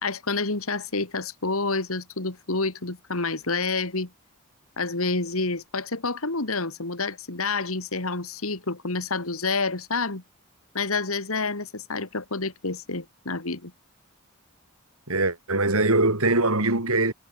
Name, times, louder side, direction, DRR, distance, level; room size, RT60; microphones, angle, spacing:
voice 1, 0.0-4.1 4.8-10.2 10.7-13.7, left 3 dB, 70° left, 2.4 m, -28 dB
voice 2, 15.1-17.1, right 2 dB, 75° right, 5.6 m, -22 dB
head